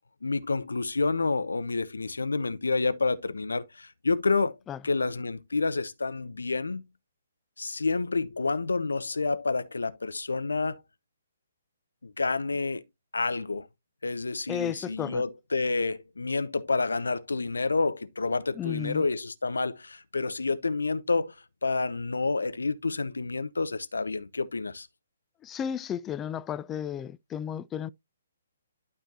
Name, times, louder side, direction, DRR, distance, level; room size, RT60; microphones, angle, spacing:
voice 1, 0.2-4.6 4.8-6.8 7.6-10.8 12.0-12.8 13.1-13.7 14.0-21.3 21.6-24.9, left 3 dB, 70° left, 0.8 m, -29 dB
voice 2, 14.5-15.2 18.6-19.1 25.4-27.9, left 9 dB, 15° left, 0.3 m, -33 dB
12.0 x 4.6 x 2.7 m
figure-of-eight pair, 130°, 0 cm